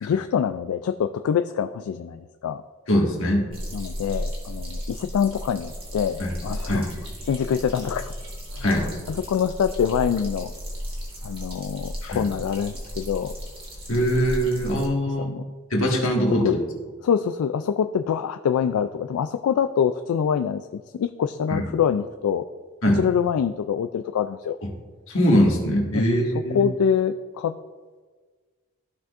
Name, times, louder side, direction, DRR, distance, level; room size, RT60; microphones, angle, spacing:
voice 1, 0.0-2.6 3.7-6.9 7.2-8.1 8.5-8.7 9.1-10.5 11.2-13.3 15.1-15.4 16.4-16.6 17.0-22.4 22.9-24.6 25.9-26.1 26.3-27.6, left 7 dB, 85° left, 10 dB, 0.3 m, -25 dB
voice 2, 2.9-3.5 6.2-6.3 6.7-6.8 8.6-8.9 12.0-12.2 13.9-15.3 15.7-16.6 21.5-21.6 22.8-23.0 25.1-26.6, equal, 70° left, -1 dB, 1.7 m, -22 dB
sound 1, 3.5-14.9, equal, 25° right, 1.6 m, -35 dB
15.0 x 5.9 x 2.5 m, 1.5 s
head